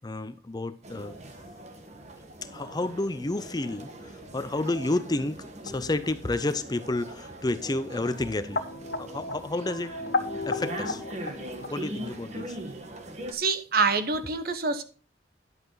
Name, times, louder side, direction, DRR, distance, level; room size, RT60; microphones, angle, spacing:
voice 1, 0.0-1.2 2.5-3.9 4.3-8.6 9.0-9.9 10.5-11.0 11.7-12.6, left 2 dB, 20° left, 0.5 m, -30 dB
sound 1, 0.8-13.3, right 1 dB, 40° right, 1.3 m, -41 dB
sound 2, 3.3-11.7, left 3 dB, 65° left, 1.0 m, -36 dB
voice 2, 13.3-14.8, right 4 dB, 55° right, 1.0 m, -26 dB
11.0 x 8.2 x 3.9 m
head